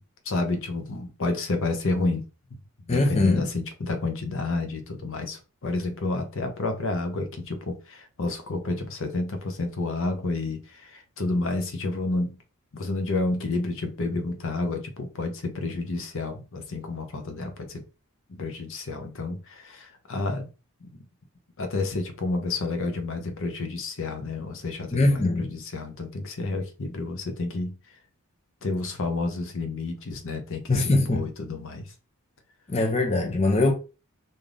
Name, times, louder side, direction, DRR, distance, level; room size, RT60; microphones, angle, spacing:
voice 1, 0.3-2.2 2.9-12.4 12.7-17.8 18.3-20.5 20.8-20.9 21.6-27.7 28.6-31.9, left 2 dB, 65° left, 0.8 m, -30 dB
voice 2, 2.9-3.5 24.9-25.5 30.7-31.3 32.7-33.7, left 2 dB, 30° left, 0.6 m, -22 dB
3.3 x 2.7 x 3.7 m
head